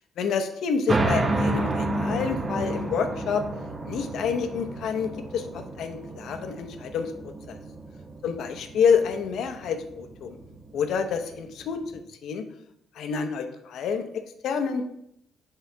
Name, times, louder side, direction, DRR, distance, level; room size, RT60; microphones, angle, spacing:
voice 1, 0.2-3.4 3.8-7.1 7.5-7.6 8.2-10.4 10.7-11.8 12.1-12.5 12.9-14.9, left 6 dB, 75° left, 7 dB, 0.7 m, -28 dB
sound 1, 0.9-12.0, right 2 dB, 30° right, 0.7 m, -31 dB
7.5 x 3.8 x 3.4 m, 0.75 s
cardioid pair, 90°, 0 cm